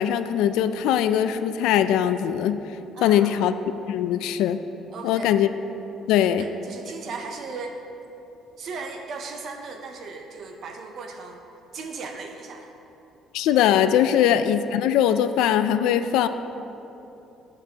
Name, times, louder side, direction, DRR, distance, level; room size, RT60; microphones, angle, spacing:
voice 1, 0.0-2.6 3.0-3.5 3.9-4.6 5.0-5.5 6.1-6.5 13.3-16.3, left 10 dB, 90° left, 11 dB, 0.3 m, -21 dB
voice 2, 2.9-3.5 4.9-5.3 6.3-7.8 8.6-11.4 11.7-12.7 14.1-14.2, right 4 dB, 45° right, 4 dB, 0.6 m, -37 dB
12.5 x 8.1 x 2.8 m, 2.9 s
cardioid pair, 170°, 0 cm